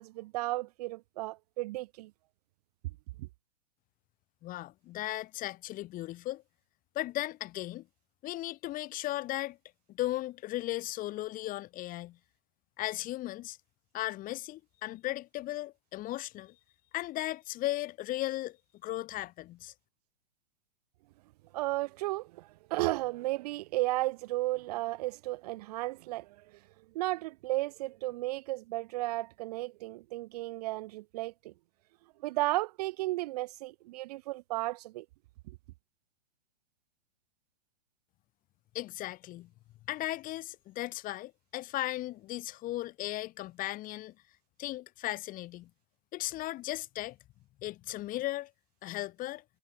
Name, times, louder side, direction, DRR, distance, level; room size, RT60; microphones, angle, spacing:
voice 1, 0.0-2.1 3.2-3.3 21.5-26.4 26.9-31.5 32.2-35.0, right 18 dB, 45° right, 0.6 m, -34 dB
voice 2, 4.4-6.4 7.0-7.8 8.2-9.6 9.9-12.2 12.8-13.6 13.9-16.5 16.9-18.6 18.8-19.7 38.7-39.5 39.9-44.1 44.6-45.7 46.1-47.2 47.6-48.5 48.8-49.4, left 16 dB, 30° left, 1.9 m, -36 dB
hypercardioid pair, 115°, 29 cm